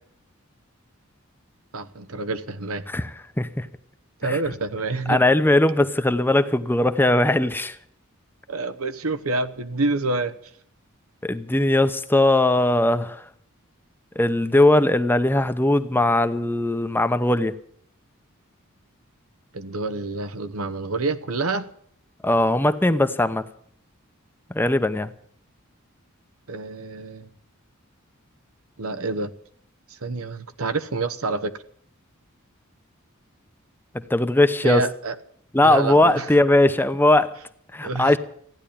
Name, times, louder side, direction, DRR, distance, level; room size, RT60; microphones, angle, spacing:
voice 1, 1.7-2.8 4.2-5.2 8.5-10.4 19.5-21.7 26.5-27.3 28.8-29.3 29.9-31.5 34.6-35.1 35.6-36.3 37.8-38.2, right 3 dB, 85° right, 11 dB, 1.0 m, -27 dB
voice 2, 2.9-3.7 4.2-4.4 5.1-7.8 11.2-13.3 14.2-17.6 22.2-23.4 24.5-25.1 34.1-34.9 35.5-37.3 37.7-38.2, left 1 dB, 10° left, 10 dB, 0.8 m, -19 dB
15.0 x 10.5 x 8.6 m, 0.64 s
head